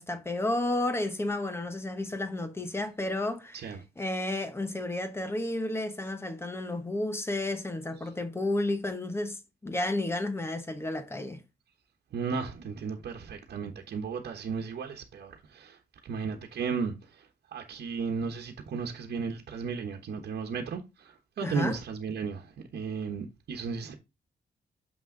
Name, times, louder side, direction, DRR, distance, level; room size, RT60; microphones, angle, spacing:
voice 1, 0.0-11.4 21.4-21.8, left 1 dB, 15° left, 1.1 m, -32 dB
voice 2, 12.1-23.9, right 5 dB, 80° right, 1.2 m, -35 dB
7.0 x 5.9 x 3.8 m
wide cardioid pair, 140°, 17 cm